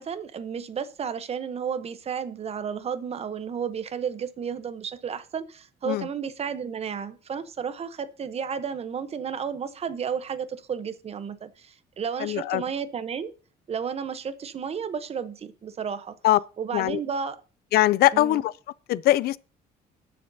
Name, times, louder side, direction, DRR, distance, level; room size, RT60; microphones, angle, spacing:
voice 1, 0.0-13.3 13.7-16.1 16.6-17.4 18.1-18.4, right 7 dB, 35° right, 0.8 m, -32 dB
voice 2, 12.2-12.6 16.2-16.4 16.7-17.0 17.7-18.5 18.9-19.4, left 15 dB, 65° left, 0.4 m, -21 dB
20.0 x 6.8 x 2.7 m
cardioid pair, 110°, 17 cm